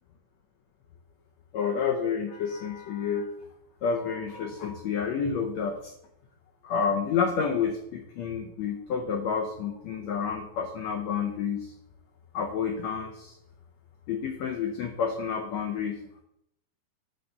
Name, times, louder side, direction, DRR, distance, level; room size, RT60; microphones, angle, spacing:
voice 1, 1.5-3.3 3.8-5.9 6.6-11.7 12.3-13.3 14.1-16.2, left 6 dB, 85° left, 3 dB, 1.5 m, -29 dB
8.4 x 4.0 x 6.7 m, 0.76 s
omnidirectional pair, 4.0 m